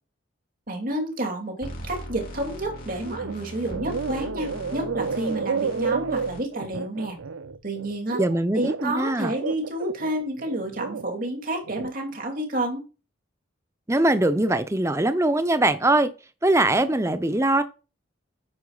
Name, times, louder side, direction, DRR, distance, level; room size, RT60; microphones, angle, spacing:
voice 1, 0.7-7.2 7.6-8.2 8.5-12.8, right 1 dB, 45° right, 2.7 m, -30 dB
sound 1, 1.6-6.4, equal, 45° left, 3.6 m, -39 dB
sound 2, 3.0-3.4 3.6-9.0 9.4-11.1 11.5-11.9, right 5 dB, 80° right, 0.6 m, -31 dB
voice 2, 8.2-9.3 13.9-16.1 16.4-17.6, right 1 dB, 15° right, 0.7 m, -22 dB
9.7 x 8.9 x 2.4 m
head